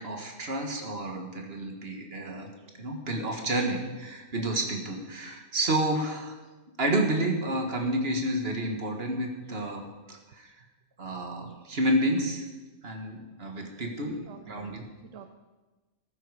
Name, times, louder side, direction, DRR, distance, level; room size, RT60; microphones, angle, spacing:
voice 1, 0.0-2.5 2.8-6.4 6.8-10.5 11.0-12.5 12.8-14.2 14.5-14.8, right 1 dB, 50° right, 3 dB, 2.0 m, -30 dB
voice 2, 13.8-14.7 15.0-15.3, right 7 dB, 75° right, 7 dB, 1.1 m, -48 dB
14.0 x 12.5 x 4.9 m, 1.2 s
omnidirectional pair, 1.3 m